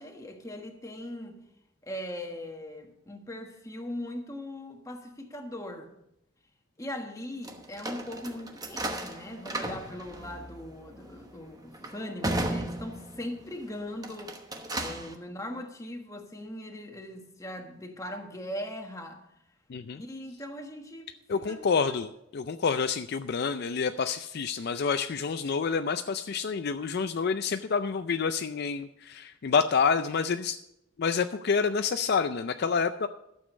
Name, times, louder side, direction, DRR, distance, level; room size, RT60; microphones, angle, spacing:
voice 1, 0.0-1.4 1.8-5.9 6.8-14.4 14.7-19.2 19.9-22.0, left 1 dB, 15° left, 1.3 m, -40 dB
sound 1, 7.4-13.5 13.9-15.2, right 1 dB, 20° right, 1.0 m, -35 dB
voice 2, 19.7-20.0 21.3-30.6 31.0-33.1, left 5 dB, 55° left, 0.4 m, -28 dB
11.5 x 7.2 x 6.3 m
head